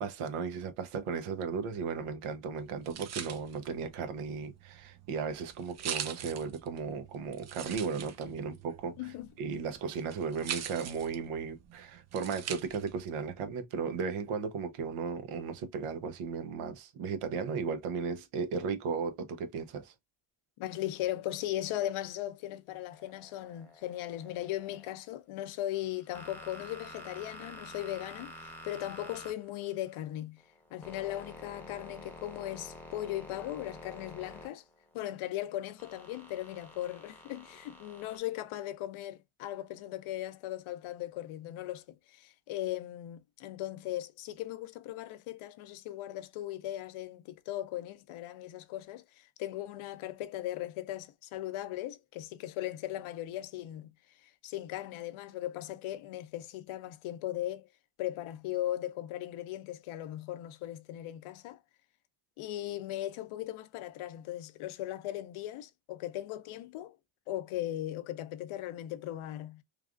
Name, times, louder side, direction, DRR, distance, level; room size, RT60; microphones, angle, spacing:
voice 1, 0.0-19.9, right 5 dB, 85° right, 0.8 m, -35 dB
sound 1, 2.6-13.0, right 9 dB, 35° right, 0.4 m, -43 dB
voice 2, 9.0-9.3 20.6-30.4 30.7-34.6 34.9-53.9 54.2-57.7 58.0-61.6 62.4-67.0 67.3-69.6, left 14 dB, 75° left, 0.6 m, -38 dB
sound 2, 22.9-24.9 25.7-30.0 30.4-34.9 35.8-38.2, left 1 dB, 5° left, 0.7 m, -49 dB
3.2 x 2.3 x 2.4 m
cardioid pair, 110°, 49 cm